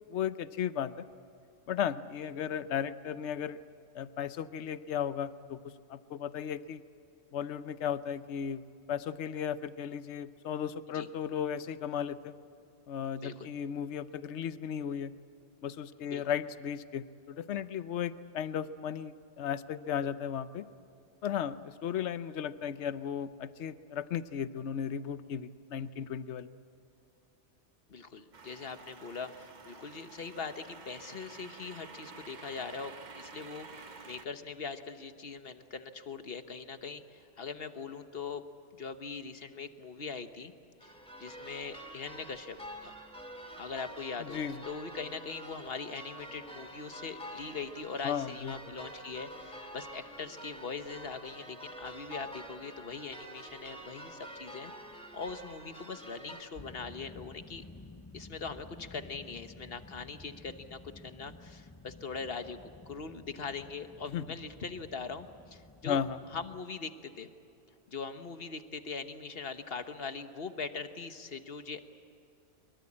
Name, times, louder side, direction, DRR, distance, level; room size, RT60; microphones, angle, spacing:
voice 1, 0.1-1.0 1.7-3.6 3.9-6.8 7.3-8.6 8.9-12.3 12.9-15.1 15.6-20.7 21.2-26.5 44.2-44.6 48.0-48.6 64.1-64.2 65.8-66.2, left 8 dB, 70° left, 14 dB, 1.0 m, -35 dB
voice 2, 27.9-38.4 38.7-40.5 40.8-42.9 43.6-57.6 58.1-62.6 62.9-66.0 66.3-67.3 67.9-71.8, left 5 dB, 55° left, 9 dB, 1.3 m, -41 dB
sound 1, 28.3-34.3, right 4 dB, 40° right, 1.0 m, -50 dB
sound 2, 40.8-56.4, equal, 5° left, 2.4 m, -47 dB
sound 3, 56.5-66.6, left 3 dB, 20° left, 0.5 m, -52 dB
23.5 x 23.0 x 8.7 m, 2.7 s
omnidirectional pair, 1.2 m